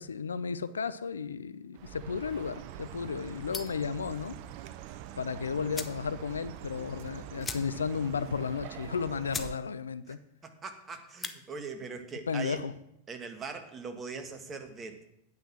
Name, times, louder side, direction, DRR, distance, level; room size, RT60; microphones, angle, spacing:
voice 1, 0.0-4.4 5.2-10.2 12.3-12.7, left 6 dB, 70° left, 0.5 m, -34 dB
Chirp tweet, 1.7-9.5, right 12 dB, 45° right, 0.6 m, -45 dB
sound 1, 3.5-3.9 5.2-5.3 5.7-6.1 6.4-6.5 6.7-6.9 7.4-8.0 8.3-8.4 8.9-9.0 9.3-9.6 9.9-10.3 11.0-11.4, left 5 dB, 15° left, 0.8 m, -39 dB
voice 2, 10.4-12.6 13.1-15.1, right 4 dB, 20° right, 1.5 m, -41 dB
9.5 x 8.0 x 6.1 m
figure-of-eight pair, 90°, 0 cm